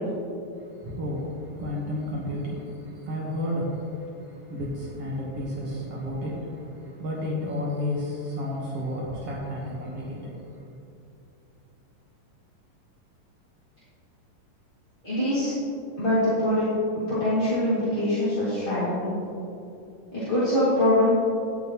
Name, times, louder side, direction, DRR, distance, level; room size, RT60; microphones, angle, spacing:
voice 1, 0.6-10.7, left 1 dB, 55° right, -4 dB, 2.0 m, -32 dB
voice 2, 15.0-15.5 16.0-16.7 17.1-19.1 20.1-21.1, left 1 dB, 20° left, -12 dB, 2.0 m, -23 dB
17.0 x 7.2 x 3.1 m, 2.7 s
omnidirectional pair, 3.8 m